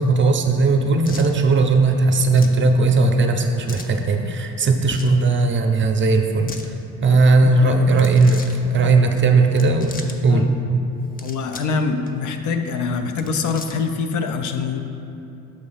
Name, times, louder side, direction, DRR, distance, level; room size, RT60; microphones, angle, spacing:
voice 1, 0.0-6.7 7.0-10.0 10.2-10.9, right 3 dB, 40° right, 5 dB, 0.5 m, -17 dB
sound 1, 1.0-1.3 2.3-2.6 3.7-4.0 4.8-5.2 6.3-6.7 7.9-8.6 9.5-10.2 11.0-11.8 12.1-12.2 13.0-13.9, left 3 dB, 30° left, 0.5 m, -38 dB
voice 2, 7.1-7.8 9.3-9.4 10.3-10.5 11.2-14.8, left 5 dB, 75° left, 6 dB, 0.5 m, -25 dB
6.4 x 3.2 x 5.6 m, 2.7 s
cardioid pair, 90°, 30 cm